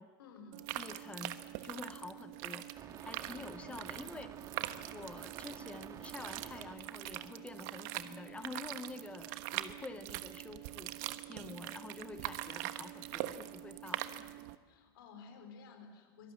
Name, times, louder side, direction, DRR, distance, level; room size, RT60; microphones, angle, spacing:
voice 1, 0.2-0.8 3.2-3.8 11.3-11.6 14.7-16.3, left 4 dB, 85° left, 6 dB, 4.7 m, -54 dB
sound 1, 0.5-14.6, right 15 dB, 60° right, 1.2 m, -43 dB
voice 2, 0.8-1.4 1.6-2.7 3.0-4.3 4.9-10.9 11.3-14.1, left 3 dB, 10° left, 11 dB, 0.8 m, -48 dB
sound 2, 2.8-6.8 7.5-7.6, right 7 dB, 30° right, 1.9 m, -51 dB
24.5 x 18.0 x 8.6 m, 1.5 s
supercardioid pair, 140°, 12 cm